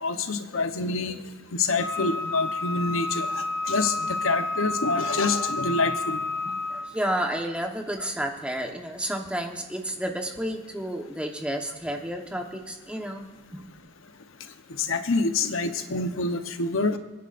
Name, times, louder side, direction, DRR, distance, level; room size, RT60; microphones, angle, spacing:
voice 1, 0.0-1.2 1.5-6.2 14.8-17.0, left 3 dB, 75° left, 8 dB, 0.9 m, -26 dB
Wind instrument woodwind instrument, 1.8-7.0, left 3 dB, 25° left, 1.7 m, -30 dB
voice 2, 6.4-13.3 13.5-13.7, right 1 dB, 5° right, 3 dB, 1.1 m, -31 dB
27.0 x 10.0 x 2.6 m, 1.3 s
head